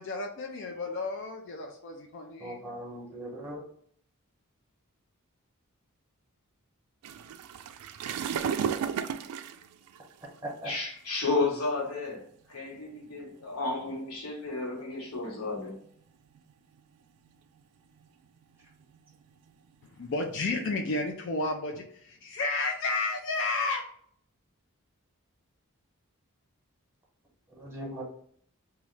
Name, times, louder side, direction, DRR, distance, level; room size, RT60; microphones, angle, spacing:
voice 1, 0.0-2.7 20.0-23.8, left 3 dB, 55° left, 0.4 m, -32 dB
voice 2, 2.4-3.6 10.4-10.7 27.5-28.0, right 1 dB, 10° right, 1.0 m, -39 dB
sound 1, 7.0-10.5 11.3-11.5 12.2-12.3 12.6-12.8 13.4-13.9 14.8-15.9 16.3-16.8 17.2-17.6 18.0-20.7, right 7 dB, 85° right, 0.3 m, -35 dB
voice 3, 10.6-15.8, left 3 dB, 80° left, 1.2 m, -32 dB
3.0 x 2.3 x 3.1 m
head